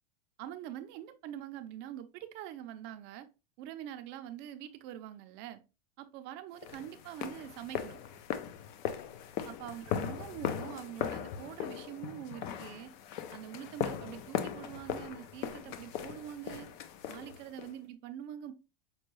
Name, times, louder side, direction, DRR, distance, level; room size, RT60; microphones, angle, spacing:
voice 1, 0.4-3.3 3.6-5.6 6.0-8.0 9.4-12.9 13.3-16.7 17.1-18.5, right 11 dB, 35° right, 0.5 m, -44 dB
sound 1, 6.6-17.8, left 9 dB, 50° left, 0.5 m, -39 dB
5.4 x 2.2 x 3.0 m
supercardioid pair, 145°, 30 cm